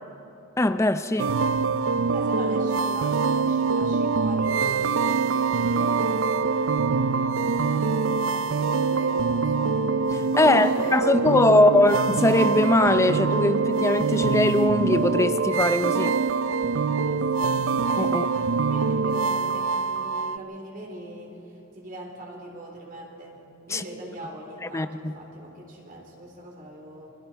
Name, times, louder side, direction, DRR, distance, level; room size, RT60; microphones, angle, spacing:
voice 1, 0.6-1.3 10.4-16.2 18.0-18.3 23.7-23.8 24.7-25.1, left 2 dB, 15° left, 11 dB, 0.5 m, -21 dB
sound 1, 1.2-20.4, right 4 dB, 70° right, 0.5 m, -24 dB
voice 2, 1.9-6.2 6.9-9.9 10.4-11.9 17.0-17.6 18.0-23.4 23.7-27.2, right 1 dB, 45° right, -1 dB, 4.1 m, -41 dB
28.0 x 23.0 x 4.6 m, 2.8 s
head